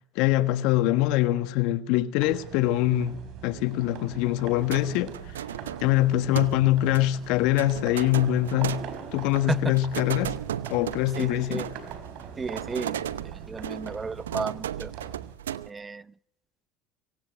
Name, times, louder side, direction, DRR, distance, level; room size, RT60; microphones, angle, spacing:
voice 1, 0.1-5.2 5.8-8.8 9.1-10.4 10.7-11.7, left 15 dB, 65° left, 1.4 m, -24 dB
sound 1, 2.2-15.3, right 7 dB, 60° right, 4.4 m, -42 dB
sound 2, 4.6-15.7, right 10 dB, 85° right, 0.8 m, -36 dB
voice 2, 11.2-11.6 12.4-13.0 13.3-14.9 15.7-16.0, right 4 dB, 25° right, 0.7 m, -33 dB
24.0 x 16.0 x 7.8 m
hypercardioid pair, 70°, 0 cm